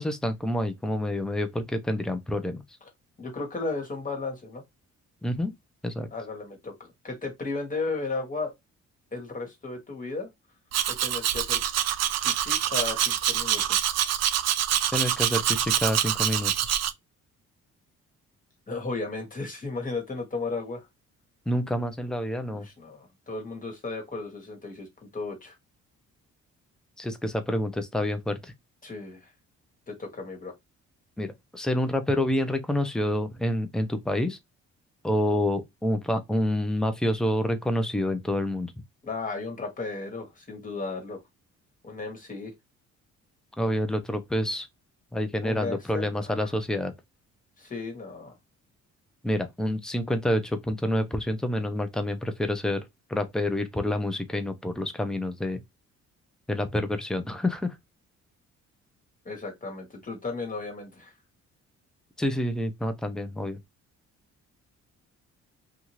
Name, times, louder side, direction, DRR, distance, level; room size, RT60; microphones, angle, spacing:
voice 1, 0.0-2.6 5.2-5.5 5.8-6.1 14.9-16.8 21.5-22.6 27.0-28.5 31.2-34.4 35.0-38.7 43.6-44.7 45.1-46.9 49.2-52.8 53.1-55.6 56.5-57.8 62.2-63.6, left 1 dB, ahead, 0.6 m, -28 dB
voice 2, 3.2-4.6 6.1-8.5 9.1-10.3 10.9-11.6 12.2-13.9 18.7-20.9 22.6-25.5 28.8-29.3 29.9-30.5 39.0-41.2 41.8-42.5 45.4-46.5 47.6-48.3 59.2-61.1, left 3 dB, 25° left, 1.5 m, -35 dB
Domestic sounds home sounds, 10.7-16.9, right 11 dB, 60° right, 0.4 m, -26 dB
2.7 x 2.4 x 3.0 m
cardioid pair, 90°, 30 cm